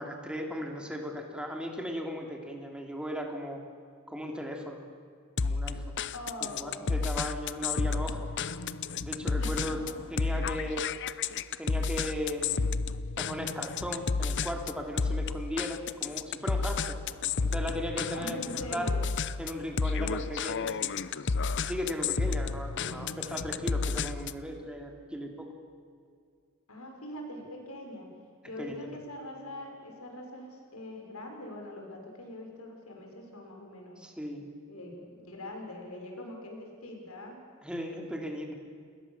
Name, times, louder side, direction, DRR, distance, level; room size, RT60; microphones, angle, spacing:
voice 1, 0.0-3.6 4.1-4.8 5.4-6.0 6.4-8.3 9.0-9.8 10.1-10.9 11.6-12.7 13.2-17.0 17.2-18.9 19.4-20.9 21.6-25.5 28.6-28.9 34.0-34.5 37.6-38.5, equal, 5° right, 2 dB, 3.3 m, -37 dB
sound 1, 5.4-24.5, left 4 dB, 55° left, 0.7 m, -31 dB
voice 2, 6.1-7.1 9.4-10.0 18.1-19.0 26.7-28.1 28.4-34.0 34.7-37.4, left 1 dB, 85° left, 2 dB, 6.3 m, -43 dB
29.0 x 21.0 x 7.5 m, 2.2 s
head